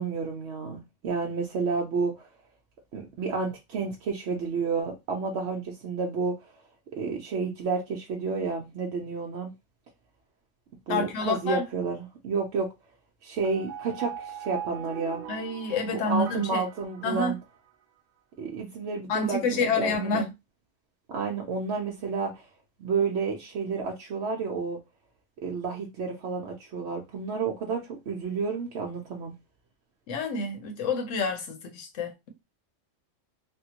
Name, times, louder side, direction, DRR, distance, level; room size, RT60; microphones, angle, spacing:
voice 1, 0.0-2.3 2.9-6.4 7.0-9.5 10.9-12.7 13.2-15.2 15.8-17.4 18.4-20.3 21.1-22.5 22.8-24.8 25.4-29.3, right 4 dB, 65° right, 0.9 m, -30 dB
voice 2, 10.9-11.6 15.3-16.6 17.0-17.3 19.1-20.3 30.1-32.1, left 3 dB, 70° left, 1.1 m, -28 dB
sound 1, 13.4-17.7, right 8 dB, 80° right, 0.4 m, -41 dB
3.5 x 2.2 x 2.8 m
omnidirectional pair, 1.3 m